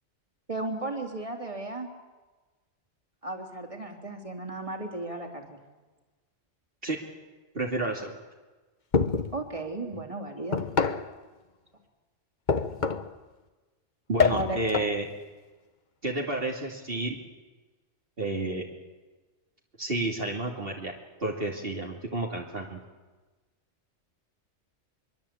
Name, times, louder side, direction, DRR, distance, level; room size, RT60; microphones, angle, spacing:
voice 1, 0.5-1.9 3.2-5.6 9.3-10.6 14.3-14.6, right 2 dB, 25° right, 3 dB, 3.5 m, -35 dB
voice 2, 7.5-8.2 14.1-15.1 16.0-17.2 18.2-18.7 19.8-20.9 21.2-22.8, right 2 dB, 50° right, -1 dB, 2.8 m, -30 dB
sound 1, 8.9-9.4 10.5-11.1 12.5-13.1 14.2-15.0, left 5 dB, 40° left, 1.2 m, -26 dB
24.5 x 23.5 x 8.6 m, 1.2 s
omnidirectional pair, 1.3 m